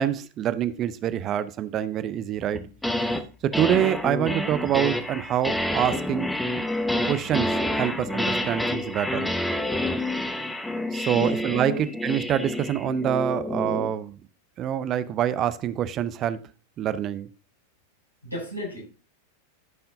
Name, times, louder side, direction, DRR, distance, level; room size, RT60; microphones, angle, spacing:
voice 1, 0.0-2.6 3.4-6.3 7.1-9.3 10.9-11.7 12.0-14.2 14.6-16.4 16.8-17.3, right 10 dB, 30° right, 0.6 m, -26 dB
sound 1, 2.5-3.2 3.5-13.9, left 1 dB, 5° left, 0.9 m, -28 dB
voice 2, 18.2-18.8, left 1 dB, 85° left, 5.8 m, -34 dB
14.0 x 5.7 x 2.7 m
figure-of-eight pair, 90°, 0 cm